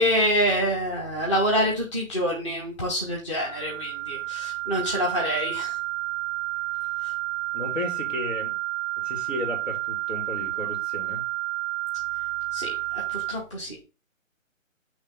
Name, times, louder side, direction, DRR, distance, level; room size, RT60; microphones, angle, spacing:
voice 1, 0.0-5.7 12.5-12.7 12.9-13.8, equal, 20° left, -4 dB, 0.9 m, -26 dB
sound 1, 3.4-13.3, right 19 dB, 45° left, 2.3 m, -30 dB
voice 2, 7.5-8.5 9.0-11.2, left 2 dB, 65° left, 2 dB, 2.4 m, -34 dB
8.3 x 3.1 x 3.7 m, 0.32 s
figure-of-eight pair, 150°, 40 cm